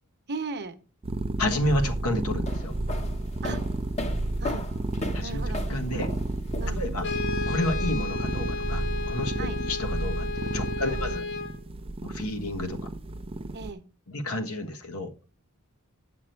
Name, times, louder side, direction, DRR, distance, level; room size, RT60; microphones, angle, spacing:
voice 1, 0.3-0.7 3.4-3.6 4.4-4.7 5.2-5.7 6.6-6.8 9.4-9.6 10.8-11.2 13.5-13.8, right 3 dB, 50° right, 8 dB, 1.0 m, -36 dB
sound 1, 1.0-13.7, right 2 dB, 25° right, 0.4 m, -31 dB
voice 2, 1.4-2.7 5.1-6.1 6.7-7.1 7.5-11.2 12.0-12.8 14.1-15.1, left 1 dB, 70° left, 4 dB, 1.3 m, -31 dB
sound 2, 2.3-7.1, left 2 dB, 30° left, 0.9 m, -36 dB
Brass instrument, 7.0-11.6, left 4 dB, 55° left, 1.0 m, -33 dB
9.1 x 6.1 x 4.5 m, 0.35 s
head